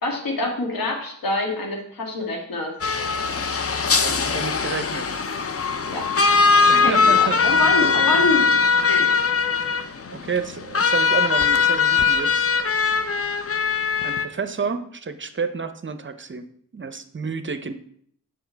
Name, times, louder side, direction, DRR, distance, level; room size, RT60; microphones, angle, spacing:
voice 1, 0.0-2.7 5.9-6.1 6.8-8.5 8.9-9.2, left 2 dB, 80° left, 1 dB, 2.0 m, -26 dB
sound 1, 2.8-14.3, left 5 dB, 40° left, 0.7 m, -20 dB
voice 2, 4.0-5.1 6.7-8.2 10.1-12.5 14.0-16.5 16.7-17.7, right 5 dB, 35° right, 10 dB, 0.7 m, -30 dB
7.1 x 6.1 x 4.5 m, 0.67 s
cardioid pair, 60°, 35 cm